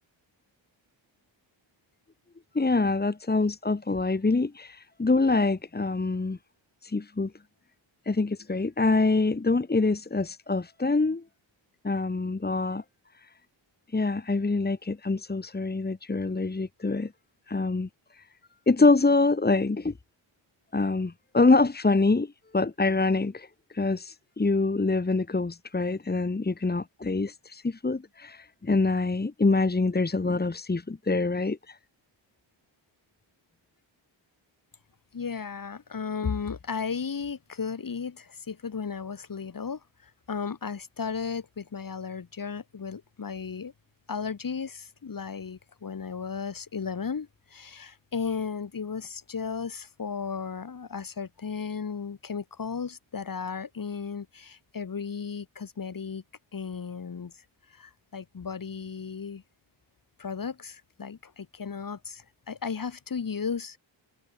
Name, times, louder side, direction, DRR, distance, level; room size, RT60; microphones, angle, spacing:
voice 1, 2.5-6.4 6.8-7.3 8.1-11.2 11.8-12.8 13.9-17.1 17.5-18.2 18.7-19.9 20.7-23.5 23.7-31.8, left 3 dB, 20° left, 2.2 m, -25 dB
voice 2, 35.1-43.7 44.1-56.2 56.5-57.3 57.7-59.4 60.2-63.8, left 6 dB, 45° left, 4.6 m, -35 dB
wide cardioid pair, 160°, 47 cm